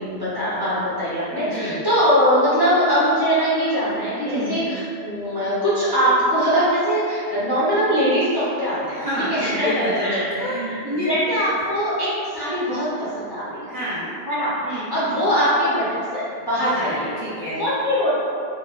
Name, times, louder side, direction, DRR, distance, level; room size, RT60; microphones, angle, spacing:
voice 1, 0.0-9.0 9.3-13.6 14.3-17.2 17.5-18.1, equal, 30° left, -12 dB, 0.5 m, -22 dB
voice 2, 1.4-1.7 4.3-4.6 8.9-11.2 13.6-14.1 14.6-14.9 16.6-17.6, equal, 45° right, -10 dB, 0.7 m, -28 dB
3.0 x 2.1 x 2.3 m, 2.4 s
omnidirectional pair, 1.1 m